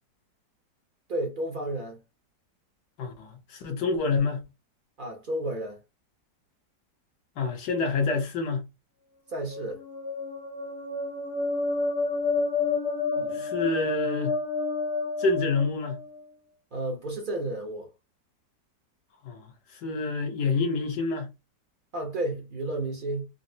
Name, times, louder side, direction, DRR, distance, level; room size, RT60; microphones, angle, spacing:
voice 1, 1.1-2.0 5.0-5.8 9.3-9.8 13.2-13.5 16.7-17.9 21.9-23.2, right 1 dB, 45° right, 0.7 m, -32 dB
voice 2, 3.0-4.4 7.4-8.6 13.3-14.4 15.2-16.0 19.2-21.3, left 4 dB, 70° left, 1.4 m, -27 dB
sound 1, 9.5-16.2, left 3 dB, 55° left, 0.8 m, -30 dB
3.9 x 2.0 x 2.6 m
omnidirectional pair, 1.9 m